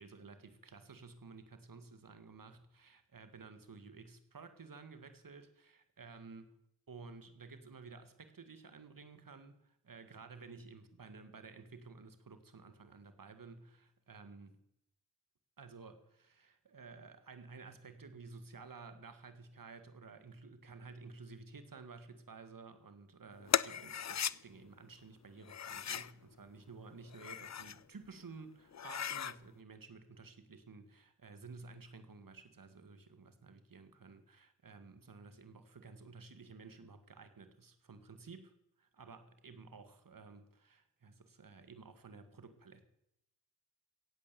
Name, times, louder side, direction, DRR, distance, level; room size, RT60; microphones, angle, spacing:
voice 1, 0.0-6.5 6.9-14.6 15.6-38.5 38.8-42.8, right 4 dB, 60° right, 10 dB, 1.8 m, -53 dB
sound 1, 23.5-24.3 25.4-26.1 27.0-27.8 28.2-28.3 28.7-29.4, left 8 dB, 45° left, 0.5 m, -37 dB
16.5 x 8.7 x 6.9 m, 0.77 s
cardioid pair, 40°, 38 cm